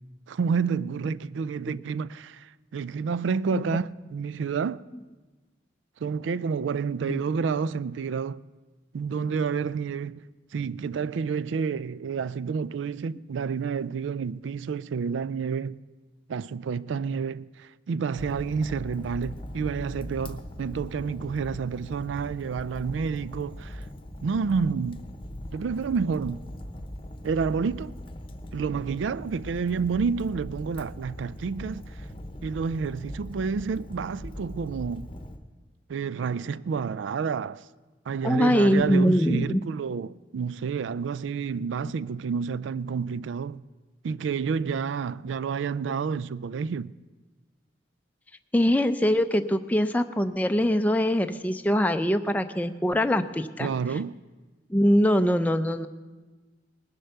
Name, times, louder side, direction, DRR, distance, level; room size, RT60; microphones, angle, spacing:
voice 1, 0.3-4.8 6.0-8.4 8.9-10.3 10.5-15.8 16.3-23.9 24.2-25.0 25.5-26.4 27.2-27.9 28.5-32.1 32.4-35.1 35.9-37.6 38.1-43.6 44.0-46.9 53.6-54.2, right 5 dB, 85° right, 0.4 m, -29 dB
Fire, 18.2-35.4, left 1 dB, 30° left, 0.9 m, -40 dB
voice 2, 38.2-39.6 41.8-41.9 48.5-53.7 54.7-55.9, equal, 10° left, 0.5 m, -23 dB
19.0 x 7.8 x 6.7 m
head